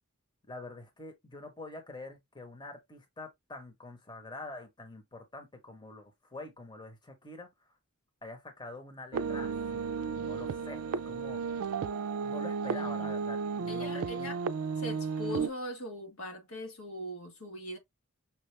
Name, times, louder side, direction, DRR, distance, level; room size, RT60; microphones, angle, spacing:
voice 1, 0.5-7.5 8.2-9.8 10.1-11.7 12.2-14.3, left 2 dB, 20° left, 1.0 m, -46 dB
sound 1, 9.1-15.5, right 5 dB, 75° right, 0.4 m, -33 dB
voice 2, 12.7-13.1 13.7-14.4 14.8-17.8, left 1 dB, 70° left, 1.4 m, -41 dB
5.8 x 2.4 x 3.3 m
head